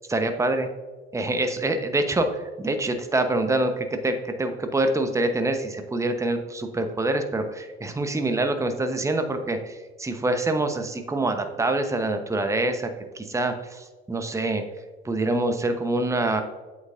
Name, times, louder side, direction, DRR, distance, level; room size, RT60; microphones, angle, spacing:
voice 1, 0.1-0.7 1.1-12.9 13.1-14.6 15.0-16.4, right 2 dB, 10° right, 7 dB, 0.9 m, -25 dB
8.1 x 8.0 x 2.6 m, 1.3 s
hypercardioid pair, 70°, 31 cm